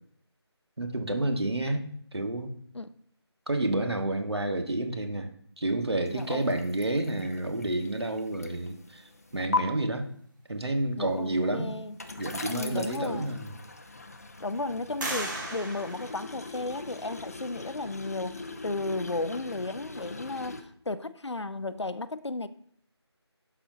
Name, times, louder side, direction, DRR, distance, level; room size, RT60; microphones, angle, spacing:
voice 1, 0.8-2.5 3.5-5.3 5.6-9.0 9.3-10.1 10.5-11.7 12.2-13.6, right 1 dB, 65° right, 1.5 m, -29 dB
sound 1, 6.0-9.6 11.1-20.6, left 3 dB, 35° left, 0.6 m, -40 dB
voice 2, 6.1-6.5 11.0-12.0 12.5-13.4 14.4-22.5, left 2 dB, 75° left, 0.6 m, -34 dB
sound 2, 13.4-14.1 15.0-16.9, right 1 dB, 45° right, 1.9 m, -37 dB
11.5 x 6.1 x 2.8 m
figure-of-eight pair, 165°, 14 cm